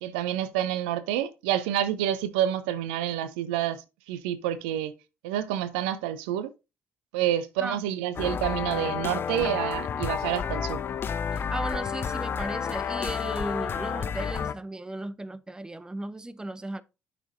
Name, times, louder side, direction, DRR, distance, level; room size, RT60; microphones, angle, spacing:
voice 1, 0.0-4.9 5.2-6.5 7.1-10.8, right 11 dB, 70° right, 0.6 m, -28 dB
sound 1, 8.2-14.5, left 7 dB, 40° left, 0.8 m, -30 dB
voice 2, 11.3-16.8, right 2 dB, 15° right, 0.7 m, -36 dB
12.0 x 6.0 x 2.6 m
figure-of-eight pair, 50°, 6 cm